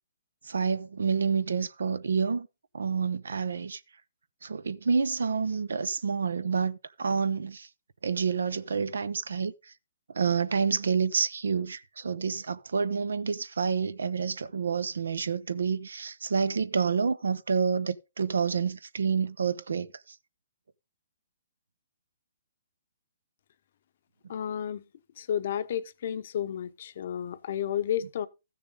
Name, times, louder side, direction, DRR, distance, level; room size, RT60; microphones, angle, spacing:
voice 1, 0.4-2.5 2.7-3.8 4.4-7.7 8.0-9.5 10.1-19.9, right 5 dB, 80° right, 0.7 m, -28 dB
voice 2, 24.3-24.8 25.2-28.3, left 9 dB, 55° left, 0.8 m, -32 dB
14.0 x 6.6 x 3.7 m
hypercardioid pair, 140°, 0 cm